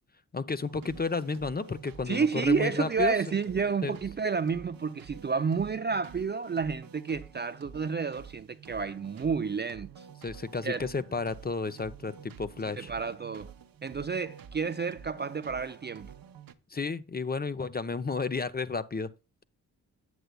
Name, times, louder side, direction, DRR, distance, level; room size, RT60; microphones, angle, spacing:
voice 1, 0.3-3.2 3.8-4.0 10.2-12.9 16.7-19.1, left 4 dB, 25° left, 0.6 m, -32 dB
sound 1, 0.6-16.5, right 7 dB, 55° right, 0.8 m, -49 dB
voice 2, 2.1-10.1 10.6-10.9 12.8-13.5 13.8-16.1, right 5 dB, 25° right, 0.4 m, -30 dB
8.0 x 7.7 x 2.3 m
supercardioid pair, 45°, 41 cm